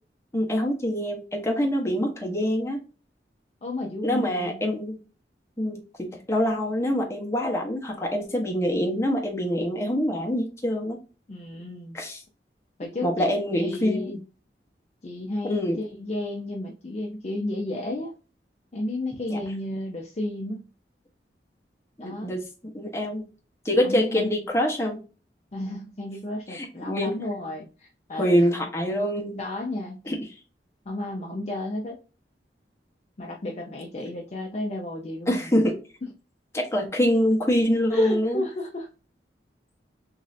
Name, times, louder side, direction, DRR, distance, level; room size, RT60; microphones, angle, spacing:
voice 1, 0.3-2.8 4.0-5.0 5.6-11.0 11.9-12.2 13.0-14.2 15.4-15.8 19.3-19.4 22.0-22.4 22.7-23.3 23.6-25.0 26.5-27.1 28.1-29.4 30.1-30.2 35.3-35.8 36.5-38.4, equal, 15° left, 0 dB, 0.8 m, -25 dB
voice 2, 3.6-4.7 11.3-12.0 12.8-14.2 15.0-18.2 18.7-20.7 22.0-22.3 23.8-24.3 25.5-28.5 29.4-30.1 30.9-32.0 33.2-35.5 37.9-38.9, left 1 dB, 40° left, 0 dB, 0.4 m, -33 dB
3.2 x 2.6 x 2.5 m, 0.34 s
head